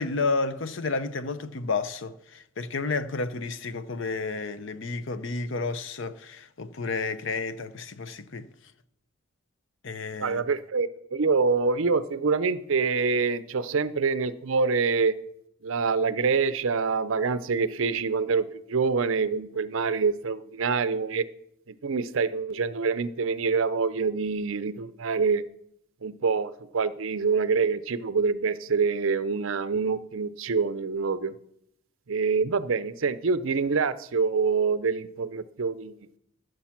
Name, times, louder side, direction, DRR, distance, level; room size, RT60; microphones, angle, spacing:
voice 1, 0.0-8.5 9.8-10.4, left 3 dB, 60° left, 0.7 m, -31 dB
voice 2, 10.2-15.2 15.6-21.3 21.7-25.4 26.0-31.3 32.1-35.9, right 5 dB, 70° right, 0.6 m, -26 dB
14.5 x 6.5 x 5.9 m
head